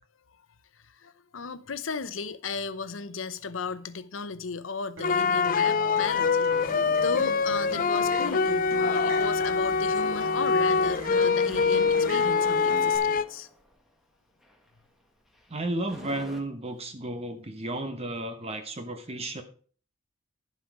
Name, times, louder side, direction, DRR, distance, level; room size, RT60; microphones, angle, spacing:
voice 1, 0.9-13.5, left 5 dB, 70° left, 0.8 m, -35 dB
sound 1, 5.0-13.2, left 5 dB, 45° left, 0.5 m, -24 dB
Acoustic guitar, 5.0-13.0, equal, 90° right, 3.2 m, -41 dB
sound 2, 6.5-8.1 9.0-13.8 14.4-14.7 15.4-15.5 15.7-16.4, equal, ahead, 1.6 m, -45 dB
voice 2, 15.5-19.4, right 1 dB, 30° right, 1.0 m, -33 dB
11.0 x 7.7 x 4.8 m
head